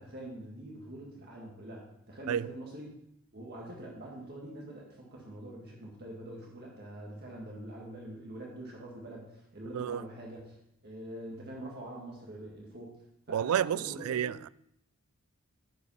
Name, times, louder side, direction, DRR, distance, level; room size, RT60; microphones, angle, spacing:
voice 1, 0.0-2.9 3.3-10.6 10.8-13.0 13.3-14.2, right 1 dB, 50° right, 1.8 m, -44 dB
voice 2, 13.3-14.5, right 9 dB, 80° right, 0.3 m, -30 dB
9.5 x 5.3 x 5.7 m
head